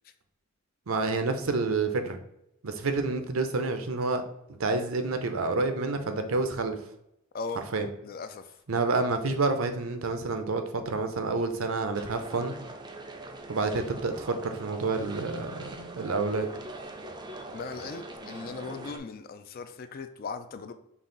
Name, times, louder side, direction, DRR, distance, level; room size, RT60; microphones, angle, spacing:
voice 1, 0.9-2.2 2.6-4.2 4.5-6.8 7.7-7.9 8.7-12.5 13.5-16.5, right 3 dB, 70° right, 7 dB, 0.6 m, -28 dB
voice 2, 7.3-7.7 8.0-8.5 17.5-20.7, left 4 dB, 45° left, 9 dB, 0.4 m, -38 dB
sound 1, 11.9-19.0, right 2 dB, 20° right, 0.4 m, -42 dB
5.4 x 2.4 x 3.8 m, 0.80 s
head